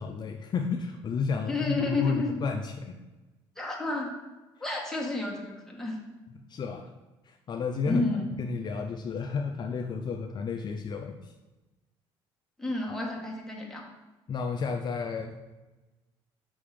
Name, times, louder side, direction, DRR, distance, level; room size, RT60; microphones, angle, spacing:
voice 1, 0.0-3.0 6.5-6.9 7.3-8.0 8.4-11.3 14.3-15.3, left 5 dB, 45° left, 3 dB, 0.5 m, -32 dB
voice 2, 1.5-2.4 3.6-4.1 4.6-6.0 7.9-8.3 12.6-13.9, left 2 dB, 5° left, -3 dB, 1.4 m, -31 dB
5.5 x 3.5 x 5.1 m, 1.1 s
supercardioid pair, 90°, 11 cm